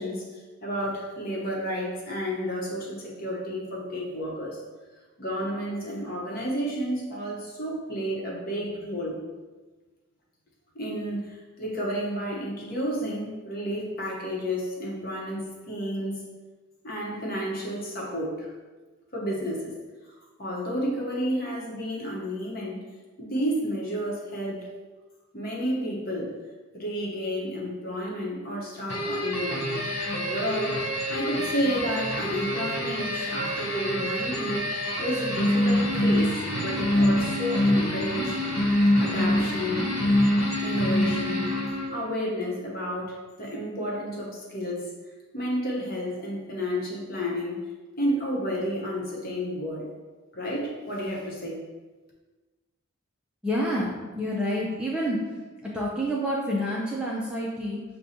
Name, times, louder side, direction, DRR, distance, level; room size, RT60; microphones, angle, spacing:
voice 1, 0.0-4.6 5.2-9.2 10.7-16.2 16.8-18.5 19.1-19.7 20.4-22.8 23.2-24.7 25.3-26.3 26.7-29.7 30.1-34.6 35.0-38.4 39.0-39.9 40.6-41.5 41.9-44.9 45.3-47.6 48.0-50.0 50.3-51.6, equal, 45° left, -3 dB, 0.9 m, -31 dB
sound 1, 28.9-42.1, left 1 dB, 75° left, 1.1 m, -26 dB
voice 2, 53.4-55.3 55.6-57.8, equal, 5° right, -5 dB, 0.4 m, -28 dB
6.5 x 2.2 x 2.8 m, 1.3 s
head